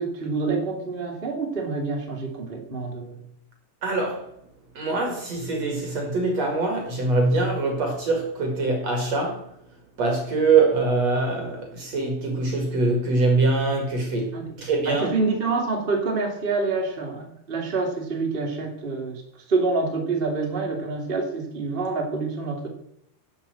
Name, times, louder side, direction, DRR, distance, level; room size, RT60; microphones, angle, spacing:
voice 1, 0.0-3.2 14.3-14.6 14.8-19.2 19.5-22.7, right 3 dB, 25° right, 1.1 m, -27 dB
voice 2, 3.8-4.3 4.7-9.5 10.0-15.1, right 3 dB, 50° right, 2.3 m, -23 dB
11.0 x 7.4 x 7.6 m
omnidirectional pair, 5.5 m